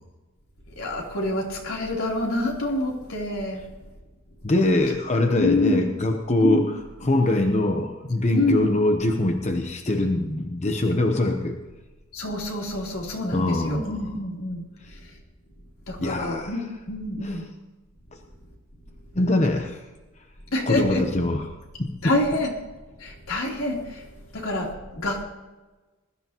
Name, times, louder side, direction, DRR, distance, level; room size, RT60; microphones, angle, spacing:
voice 1, 0.8-3.6 5.4-5.9 6.4-6.7 8.3-8.7 12.1-15.0 15.9-16.6 16.9-17.5 20.5-21.0 22.0-22.5 23.0-24.0 24.3-25.2, left 1 dB, 80° left, -2 dB, 3.6 m, -27 dB
voice 2, 4.4-6.7 7.0-11.6 13.3-14.1 16.0-16.5 17.2-17.4 19.1-19.8 20.7-21.4 21.8-22.0, left 2 dB, 35° left, 4 dB, 0.9 m, -23 dB
20.5 x 13.5 x 3.0 m, 1.2 s
head